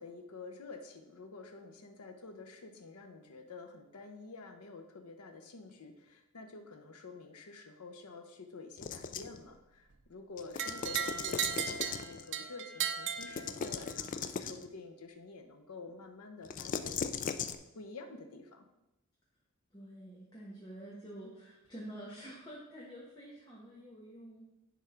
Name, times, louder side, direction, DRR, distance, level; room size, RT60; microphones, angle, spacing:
voice 1, 0.0-17.5 17.7-18.6, left 3 dB, 90° left, 5 dB, 0.8 m, -49 dB
sound 1, 8.8-9.4 10.4-12.3 13.2-14.7 16.4-17.6, left 6 dB, 35° left, 0.3 m, -38 dB
sound 2, 10.6-14.0, right 8 dB, 55° right, 0.5 m, -36 dB
voice 2, 19.7-24.4, right 1 dB, 20° left, -6 dB, 1.3 m, -48 dB
10.0 x 3.7 x 4.4 m, 0.93 s
head